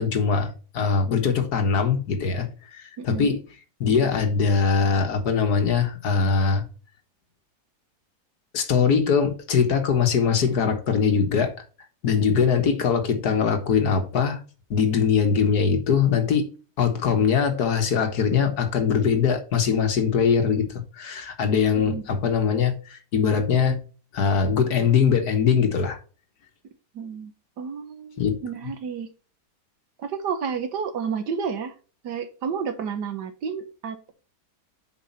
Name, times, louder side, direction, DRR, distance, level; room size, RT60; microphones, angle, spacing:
voice 1, 0.0-3.4 3.8-6.7 8.5-11.5 12.0-14.4 14.7-16.5 16.8-23.8 24.1-26.0 28.2-28.4, left 6 dB, 65° left, 1.8 m, -22 dB
voice 2, 3.0-3.4 21.8-22.1 26.9-29.1 30.0-31.8 32.0-34.1, right 6 dB, 80° right, 1.7 m, -31 dB
7.4 x 5.0 x 4.2 m
omnidirectional pair, 1.8 m